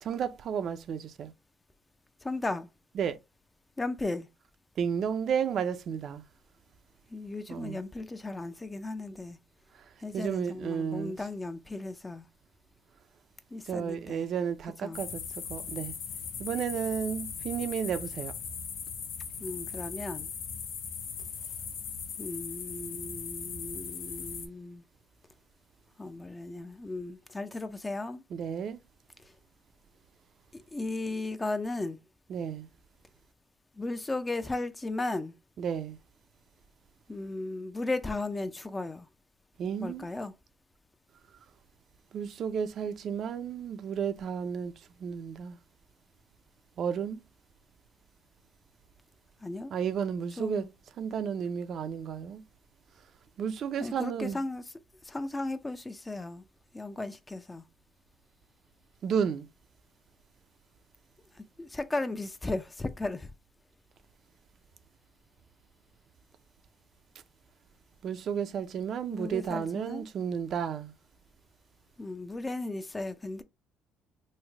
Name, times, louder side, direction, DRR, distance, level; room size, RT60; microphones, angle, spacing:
voice 1, 0.0-1.3 3.0-3.2 4.8-6.2 7.5-7.8 10.1-11.2 13.6-15.2 15.5-15.9 16.4-18.3 28.3-28.8 32.3-32.7 35.6-36.0 39.6-40.1 42.1-44.7 45.0-45.6 46.8-47.2 49.7-50.7 51.0-52.4 53.4-54.4 59.0-59.5 68.0-70.9, right 7 dB, 55° right, 0.4 m, -32 dB
voice 2, 2.2-2.7 3.8-4.3 7.1-9.4 10.0-12.3 13.5-14.3 14.8-15.0 19.4-20.3 22.2-24.8 26.0-28.2 30.7-32.0 33.8-35.4 37.1-39.1 39.8-40.3 49.4-49.7 50.4-50.7 53.8-54.7 55.0-56.4 56.7-57.6 61.6-63.3 69.1-70.1 72.0-73.4, left 2 dB, 15° left, 0.3 m, -35 dB
sound 1, 14.9-24.5, left 6 dB, 75° left, 0.6 m, -39 dB
3.1 x 2.0 x 3.4 m
cardioid pair, 110°, 0 cm